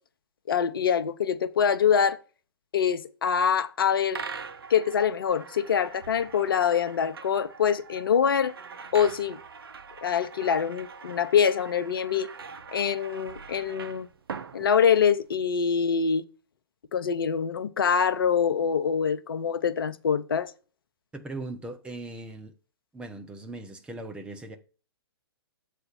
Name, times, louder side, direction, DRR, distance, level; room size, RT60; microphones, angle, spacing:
voice 1, 0.5-2.2 2.7-4.2 4.7-8.5 8.9-9.4 10.0-12.3 12.7-14.1 14.5-16.2 16.9-20.5, left 7 dB, 60° left, 0.7 m, -24 dB
sound 1, 4.1-15.3, right 5 dB, 65° right, 0.7 m, -43 dB
voice 2, 21.1-22.5 22.9-24.6, right 2 dB, 5° right, 0.7 m, -39 dB
7.8 x 3.3 x 5.7 m
figure-of-eight pair, 120°, 13 cm